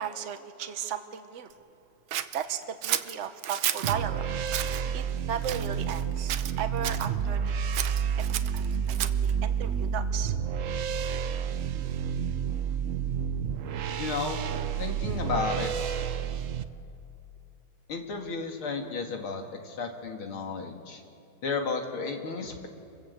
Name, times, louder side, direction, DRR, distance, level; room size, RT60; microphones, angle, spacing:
voice 1, 0.0-1.5 2.3-4.3 4.9-7.6 8.2-8.3 8.5-10.3, right 8 dB, 40° right, 8 dB, 1.2 m, -35 dB
Scissors, 2.1-4.0 4.5-4.8 5.4-6.0 6.3-7.1 7.7-9.3, right 11 dB, 90° right, 1.6 m, -32 dB
sound 1, 3.8-16.6, right 7 dB, 60° right, 0.8 m, -30 dB
voice 2, 14.0-14.4 14.8-15.7 17.9-21.0 21.4-22.7, left 4 dB, 85° left, 3 dB, 3.0 m, -33 dB
27.0 x 21.0 x 8.2 m, 2.6 s
omnidirectional pair, 2.2 m